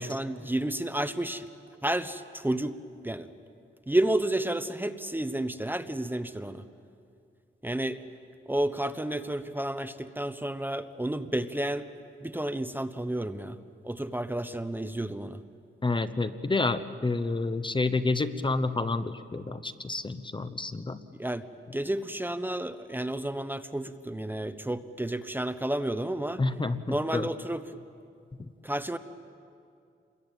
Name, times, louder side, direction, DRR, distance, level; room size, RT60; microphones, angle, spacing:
voice 1, 0.0-1.4 1.8-2.7 3.0-3.3 3.9-6.6 7.6-8.0 8.5-11.8 12.2-13.6 13.8-15.4 21.2-21.5 21.7-26.4 26.9-27.6 28.6-29.0, right 1 dB, 10° right, 10 dB, 0.9 m, -31 dB
voice 2, 15.8-21.0 26.4-27.3, left 3 dB, 25° left, 12 dB, 0.9 m, -29 dB
28.0 x 22.0 x 9.0 m, 2.4 s
wide cardioid pair, 110°, 21 cm